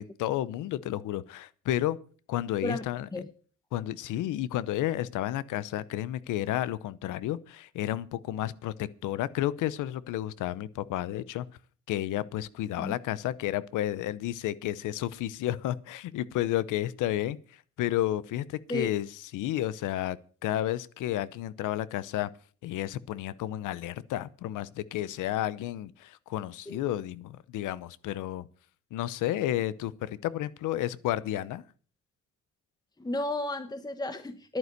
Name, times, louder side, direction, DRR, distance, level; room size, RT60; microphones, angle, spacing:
voice 1, 0.0-2.0 2.3-3.1 3.7-11.5 11.9-17.4 17.8-19.1 19.3-20.2 20.4-22.3 22.6-28.5 28.9-31.6, left 13 dB, 85° left, 0.8 m, -31 dB
voice 2, 33.0-34.6, left 2 dB, 15° left, 1.0 m, -33 dB
11.0 x 9.5 x 6.6 m
cardioid pair, 90°, 30 cm